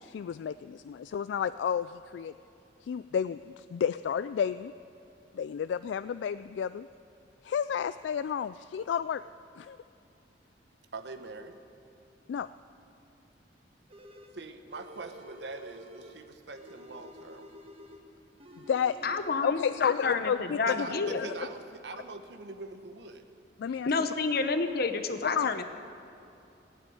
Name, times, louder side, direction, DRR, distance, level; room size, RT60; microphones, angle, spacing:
voice 1, 0.0-2.3 2.8-4.7 5.3-6.9 7.4-9.2 9.6-9.8 12.3-12.5 18.7-19.0 19.4-20.9 21.1-21.3 23.6-23.9 25.2-25.5, left 7 dB, 90° left, 14 dB, 0.3 m, -31 dB
voice 2, 10.9-11.6 14.3-17.5 20.7-23.2, right 3 dB, 70° right, 7 dB, 1.0 m, -43 dB
sound 1, 13.9-14.4 14.7-16.2 16.5-18.1 18.4-19.2, equal, 35° right, 1.3 m, -50 dB
voice 3, 19.0-21.3 23.9-25.6, left 4 dB, 60° left, 8 dB, 0.8 m, -29 dB
16.5 x 9.1 x 9.3 m, 2.7 s
head